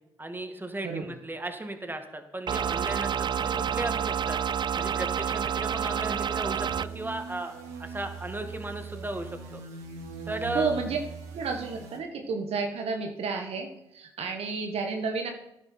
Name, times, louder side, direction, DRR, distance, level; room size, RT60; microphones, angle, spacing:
voice 1, 0.2-4.4 4.8-7.5 7.8-9.6 10.3-10.7, right 2 dB, 20° right, 6 dB, 2.1 m, -35 dB
sound 1, 2.5-6.9, right 8 dB, 45° right, 0.4 m, -29 dB
sound 2, 6.7-12.0, right 5 dB, 90° right, 1.7 m, -41 dB
voice 2, 10.5-11.0 11.3-15.3, right 4 dB, 65° right, 4 dB, 1.5 m, -31 dB
15.0 x 10.5 x 4.6 m, 0.86 s
hypercardioid pair, 45°, 11 cm